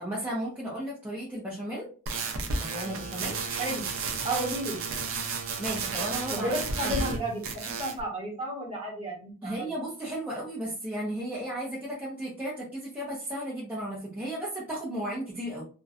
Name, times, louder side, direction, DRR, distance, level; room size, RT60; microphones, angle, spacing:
voice 1, 0.0-1.9 2.6-3.4 5.6-6.6 6.8-7.0 9.4-15.6, right 1 dB, 10° right, -7 dB, 0.5 m, -34 dB
sound 1, 2.1-7.2 7.4-8.0, right 4 dB, 65° right, 0.5 m, -32 dB
voice 2, 3.5-3.8 4.2-4.8 6.3-9.7, right 1 dB, 25° right, -3 dB, 0.9 m, -32 dB
2.5 x 2.1 x 2.3 m, 0.38 s
head